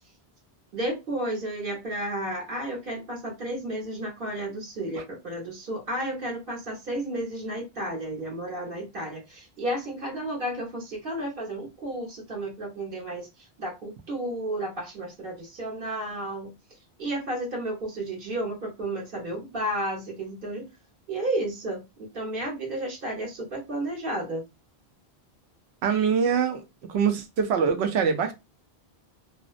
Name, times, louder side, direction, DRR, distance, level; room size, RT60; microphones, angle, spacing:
voice 1, 0.7-16.5 17.0-20.7 21.1-24.4, right 1 dB, 60° right, 1.2 m, -32 dB
voice 2, 25.8-26.6 26.9-28.3, right 6 dB, 90° right, 0.8 m, -23 dB
2.6 x 2.0 x 2.4 m
omnidirectional pair, 1.1 m